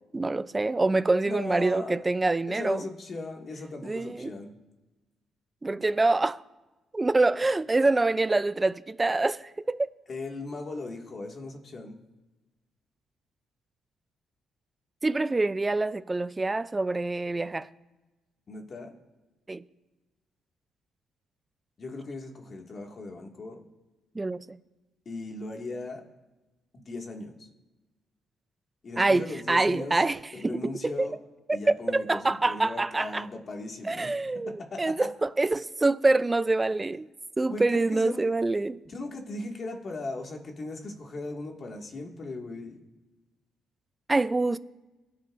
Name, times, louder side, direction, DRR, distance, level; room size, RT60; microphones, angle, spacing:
voice 1, 0.1-2.8 3.8-4.3 5.6-6.4 6.9-9.9 15.0-17.7 19.5-19.6 24.1-24.6 29.0-30.2 30.4-31.1 31.5-31.6 31.9-33.2 33.9-37.1 37.4-38.8 44.1-44.6, right 2 dB, 20° right, 0.5 m, -26 dB
voice 2, 1.2-2.0 2.5-4.6 10.1-12.0 18.5-19.0 21.8-23.7 25.1-26.0 26.7-27.5 28.8-30.0 30.3-31.2 31.5-34.1 34.5-35.1 37.5-37.6 37.9-38.1 38.8-42.8, left 2 dB, 45° left, 2.0 m, -38 dB
21.5 x 10.5 x 2.6 m
cardioid pair, 90°, 0 cm